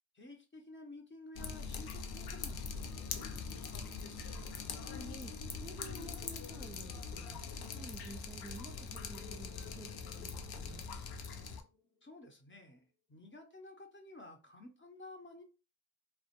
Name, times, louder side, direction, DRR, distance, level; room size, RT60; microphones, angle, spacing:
voice 1, 0.1-4.5 12.0-15.4, left 2 dB, 30° left, 0.7 m, -53 dB
Drip, 1.3-11.6, left 5 dB, 70° left, 0.5 m, -43 dB
sound 1, 2.5-11.9, left 6 dB, 90° left, 1.0 m, -57 dB
voice 2, 4.9-5.3 5.6-7.4 7.7-10.9, right 2 dB, 15° right, 0.4 m, -51 dB
2.2 x 2.2 x 2.9 m
cardioid pair, 50°, 40 cm